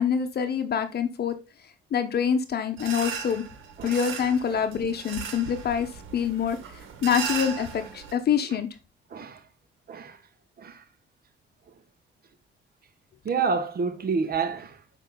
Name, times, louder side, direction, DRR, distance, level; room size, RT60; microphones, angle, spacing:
voice 1, 0.0-1.3 1.9-3.4 3.8-8.7, left 7 dB, 55° left, 1.0 m, -26 dB
sound 1, 2.8-8.1, right 6 dB, 85° right, 1.6 m, -37 dB
voice 2, 13.2-14.8, right 5 dB, 50° right, 1.4 m, -28 dB
7.2 x 5.3 x 3.9 m
cardioid pair, 90°, 20 cm